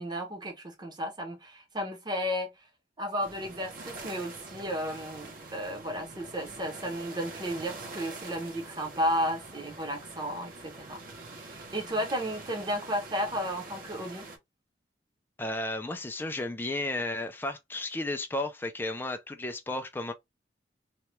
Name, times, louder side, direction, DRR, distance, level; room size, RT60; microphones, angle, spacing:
voice 1, 0.0-2.5 3.0-11.0 11.4-14.3, equal, 25° right, 0.8 m, -33 dB
sound 1, 3.2-14.4, right 3 dB, 50° right, 0.9 m, -45 dB
voice 2, 15.4-20.1, left 2 dB, 10° left, 0.3 m, -33 dB
2.8 x 2.2 x 3.0 m
head